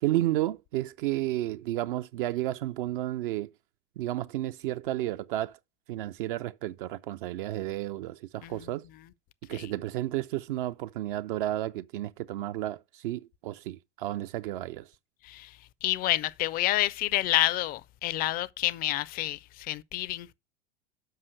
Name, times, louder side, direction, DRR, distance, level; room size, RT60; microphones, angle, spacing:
voice 1, 0.0-3.5 4.0-5.6 5.9-8.8 9.5-14.9, right 15 dB, 50° right, 0.4 m, -32 dB
voice 2, 15.8-20.4, left 16 dB, 30° left, 0.4 m, -29 dB
6.6 x 5.4 x 6.3 m
figure-of-eight pair, 80°, 34 cm